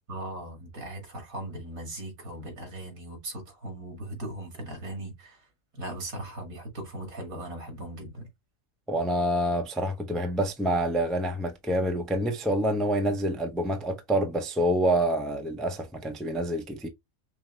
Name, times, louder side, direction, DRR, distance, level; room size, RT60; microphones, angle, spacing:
voice 1, 0.1-5.5 5.7-8.3, right 1 dB, 85° right, 2.3 m, -38 dB
voice 2, 8.9-16.9, right 1 dB, ahead, 0.3 m, -27 dB
5.5 x 2.2 x 3.1 m
omnidirectional pair, 1.4 m